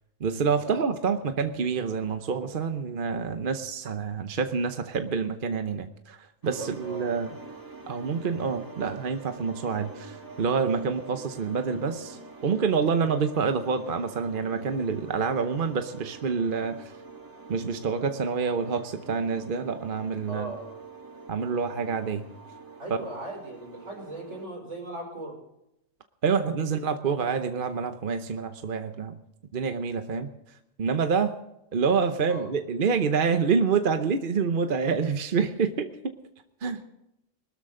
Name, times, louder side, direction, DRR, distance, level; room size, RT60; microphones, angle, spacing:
voice 1, 0.2-6.2 6.4-7.3 7.9-16.9 17.5-20.5 21.3-22.3 22.9-23.0 26.2-29.2 29.5-30.3 30.8-31.3 31.7-36.1 36.6-36.8, right 5 dB, 45° right, 8 dB, 0.9 m, -27 dB
sound 1, 6.4-24.5, right 3 dB, 15° right, 1.7 m, -46 dB
voice 2, 6.4-7.1 20.3-20.8 22.8-25.4 26.3-26.9 30.0-30.3 32.3-32.5, right 2 dB, 70° right, 0 dB, 5.3 m, -39 dB
21.5 x 13.0 x 3.8 m, 0.85 s
omnidirectional pair, 1.3 m